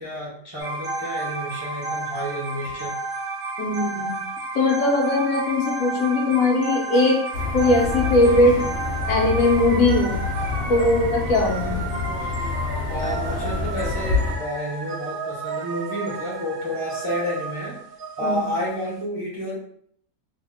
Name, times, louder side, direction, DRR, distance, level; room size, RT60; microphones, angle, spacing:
voice 1, 0.0-2.9 12.9-17.8 18.2-19.6, equal, 30° right, -5 dB, 0.5 m, -30 dB
sound 1, 0.6-19.0, right 3 dB, 70° right, 1.0 m, -32 dB
voice 2, 3.6-4.2 4.5-7.2 7.5-8.6 9.1-10.2 10.7-11.9 18.2-18.5, left 2 dB, 75° left, 1 dB, 1.0 m, -20 dB
sound 2, 7.3-14.4, left 4 dB, 60° left, 0.9 m, -27 dB
2.7 x 2.0 x 3.4 m, 0.65 s
omnidirectional pair, 1.6 m